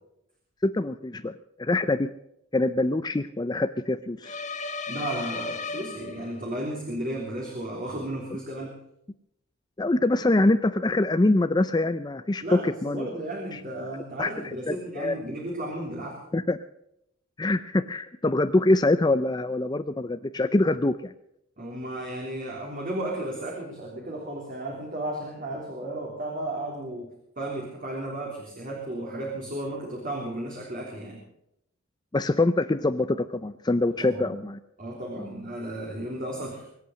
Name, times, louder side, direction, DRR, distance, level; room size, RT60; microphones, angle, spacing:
voice 1, 0.6-1.3 1.6-2.1 2.5-4.4 9.8-13.1 13.5-13.6 14.2-14.3 14.7-15.2 16.3-16.6 17.4-21.1 32.1-34.6, left 2 dB, 20° left, 11 dB, 0.5 m, -24 dB
sound 1, 4.2-6.6, left 4 dB, 35° left, 1.5 m, -34 dB
voice 2, 4.9-8.8 12.4-16.2 21.6-27.1 27.4-31.2 34.0-34.3 34.8-36.7, right 1 dB, 40° right, -1 dB, 3.5 m, -34 dB
24.0 x 8.5 x 6.4 m, 0.78 s
head